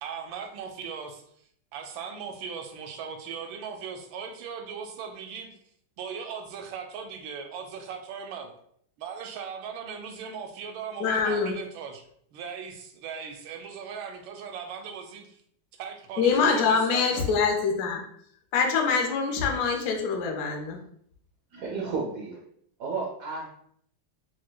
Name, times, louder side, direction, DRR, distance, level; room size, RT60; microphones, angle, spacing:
voice 1, 0.0-1.2 1.7-5.5 6.0-8.6 9.0-12.0 12.3-15.4 15.8-17.4, right 6 dB, 85° right, 5 dB, 1.4 m, -38 dB
voice 2, 11.0-11.6 16.2-18.0 18.5-20.8, left 5 dB, 65° left, 2 dB, 1.0 m, -24 dB
voice 3, 21.5-22.4 22.8-23.5, right 4 dB, 65° right, -3 dB, 0.9 m, -32 dB
6.3 x 2.1 x 2.2 m, 0.66 s
omnidirectional pair, 2.1 m